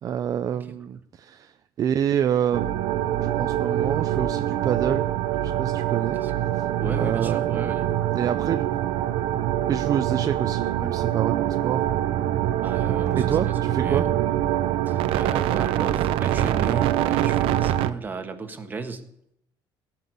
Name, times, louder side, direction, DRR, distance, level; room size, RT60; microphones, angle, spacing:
voice 1, 0.0-1.5 1.8-5.1 5.4-6.2 7.0-7.9 8.1-8.7 9.7-11.8 13.1-14.0, right 9 dB, 40° right, 10 dB, 0.5 m, -27 dB
sound 1, 2.5-17.9, right 12 dB, 85° right, 0.7 m, -24 dB
voice 2, 6.8-7.9 12.6-14.1 14.8-19.1, right 4 dB, 20° right, 5 dB, 1.5 m, -35 dB
16.5 x 6.0 x 9.4 m, 0.74 s
cardioid pair, 150°, 9 cm